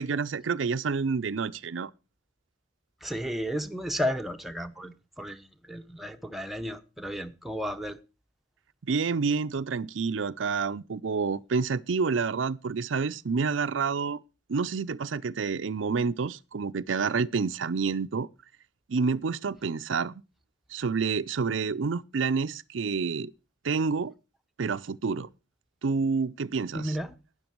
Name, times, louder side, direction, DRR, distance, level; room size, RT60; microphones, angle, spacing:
voice 1, 0.0-1.9 8.8-14.2 14.5-18.3 18.9-20.1 20.7-23.3 23.6-24.1 24.6-25.3 25.8-26.9, right 5 dB, 85° right, 0.5 m, -28 dB
voice 2, 3.0-8.0 26.7-27.2, equal, ahead, 0.8 m, -33 dB
12.5 x 9.7 x 4.5 m
head